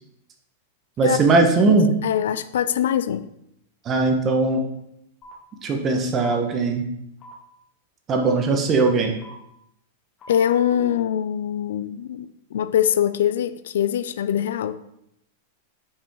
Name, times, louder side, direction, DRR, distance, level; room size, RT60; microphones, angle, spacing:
voice 1, 1.0-1.9 3.8-4.6 5.6-6.9 8.1-9.1, right 3 dB, 30° right, 1.1 m, -19 dB
voice 2, 2.0-3.3 10.3-14.8, left 10 dB, 75° left, 0.3 m, -23 dB
sound 1, 5.2-5.3 6.2-6.4 7.2-7.3 8.2-8.3 9.2-9.3 10.2-10.7, equal, 30° left, 1.7 m, -42 dB
5.0 x 5.0 x 3.7 m
hypercardioid pair, 120°, 0 cm